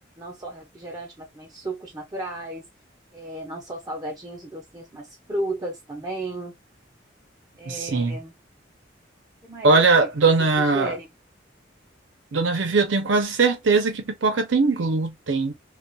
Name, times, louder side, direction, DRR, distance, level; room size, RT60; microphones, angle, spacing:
voice 1, 0.2-2.7 3.1-6.5 7.6-8.3 9.4-10.1 10.6-11.1, right 1 dB, 20° right, 0.5 m, -34 dB
voice 2, 7.7-8.2 9.6-10.9 12.3-15.5, right 4 dB, 80° right, 0.6 m, -20 dB
2.3 x 2.3 x 2.5 m
head